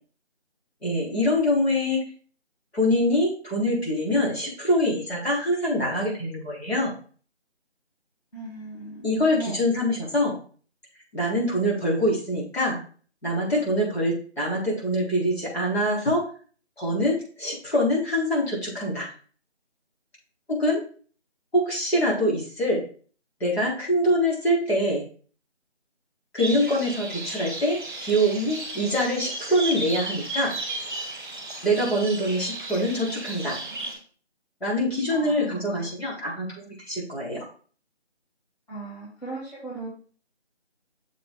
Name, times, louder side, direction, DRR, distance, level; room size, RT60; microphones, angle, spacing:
voice 1, 0.8-2.0 2.7-6.9 9.0-10.4 11.1-12.8 13.2-16.3 16.8-19.1 20.5-20.8 21.5-22.8 23.4-25.0 26.3-30.6 31.6-33.6 34.6-37.5, equal, 65° left, -5 dB, 3.8 m, -24 dB
voice 2, 8.3-9.8 35.1-35.9 38.7-39.9, right 3 dB, 35° left, -8 dB, 3.0 m, -37 dB
sound 1, 26.4-33.9, right 2 dB, 20° right, 1.4 m, -34 dB
6.8 x 4.8 x 3.7 m, 0.42 s
figure-of-eight pair, 165°, 34 cm